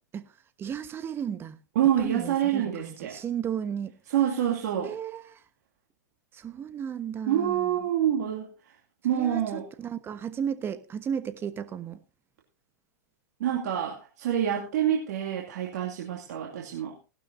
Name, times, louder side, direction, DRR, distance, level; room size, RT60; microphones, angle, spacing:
voice 1, 0.6-1.6 2.0-4.0 4.8-5.4 6.3-7.8 9.1-12.0, right 8 dB, 20° right, 1.2 m, -34 dB
voice 2, 1.8-3.2 4.1-5.0 7.3-8.7 9.0-9.6 13.4-17.0, right 10 dB, 60° right, 2.5 m, -27 dB
17.5 x 12.0 x 2.7 m
hypercardioid pair, 110°, 10 cm